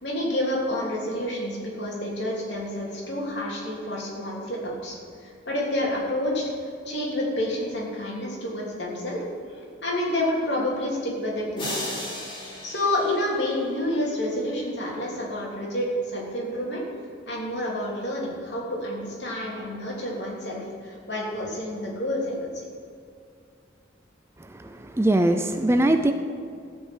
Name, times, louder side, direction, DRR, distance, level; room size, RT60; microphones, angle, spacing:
voice 1, 0.0-6.4 6.8-9.2 9.5-11.9 12.6-16.8 17.3-22.6, left 1 dB, 65° left, -4 dB, 3.2 m, -29 dB
sound 1, 11.6-13.9, left 1 dB, 25° left, 3.4 m, -35 dB
voice 2, 24.4-26.1, right 1 dB, 15° right, 7 dB, 0.4 m, -22 dB
15.0 x 5.4 x 8.1 m, 2.3 s
head